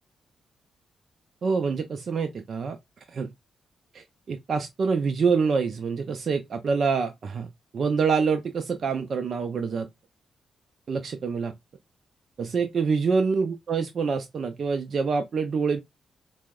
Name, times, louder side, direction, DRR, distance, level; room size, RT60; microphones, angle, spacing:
voice 1, 1.4-2.8 3.1-3.3 3.9-7.5 7.7-9.9 10.9-11.5 12.4-15.8, right 5 dB, 60° right, 0.4 m, -26 dB
4.4 x 2.0 x 2.2 m
supercardioid pair, 50°, 0 cm